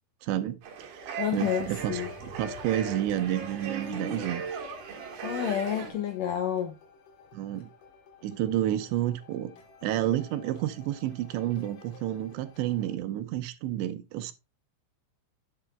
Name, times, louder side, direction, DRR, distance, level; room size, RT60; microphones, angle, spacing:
voice 1, 0.2-0.6 0.9-4.6 7.3-7.7 8.2-9.5 9.8-14.3, right 12 dB, 80° right, 3.1 m, -30 dB
sound 1, 0.6-5.9, right 5 dB, 65° right, 3.4 m, -37 dB
sound 2, 0.8-13.0, left 3 dB, 55° left, 3.4 m, -52 dB
voice 2, 1.2-2.1 5.2-6.8, left 10 dB, 80° left, 1.9 m, -29 dB
10.0 x 8.1 x 2.3 m
omnidirectional pair, 5.1 m